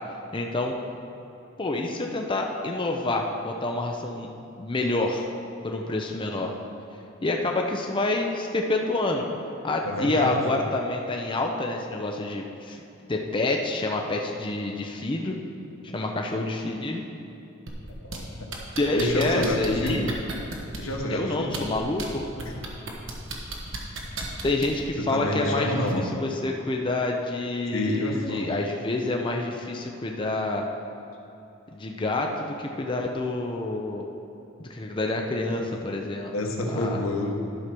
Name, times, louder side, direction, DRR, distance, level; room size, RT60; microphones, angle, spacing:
voice 1, 0.3-0.7 1.6-4.3 4.6-5.3 5.6-6.5 7.2-9.3 9.6-12.8 13.1-15.4 15.8-17.0 18.8-20.1 21.1-22.2 24.4-30.7 31.7-34.0 34.6-36.3 36.7-37.0, left 2 dB, 25° left, 1 dB, 0.6 m, -27 dB
voice 2, 9.8-10.4 15.9-16.0 18.0-18.5 19.0-20.1 20.8-21.6 22.4-22.5 25.0-26.1 27.7-28.5 36.3-37.3, left 1 dB, 80° left, 1 dB, 1.2 m, -28 dB
sound 1, 17.7-18.2 18.5-20.9 21.4-22.1 22.4-24.8 25.9-26.0, right 3 dB, 65° right, 1.3 m, -34 dB
11.5 x 4.8 x 6.0 m, 2.9 s
head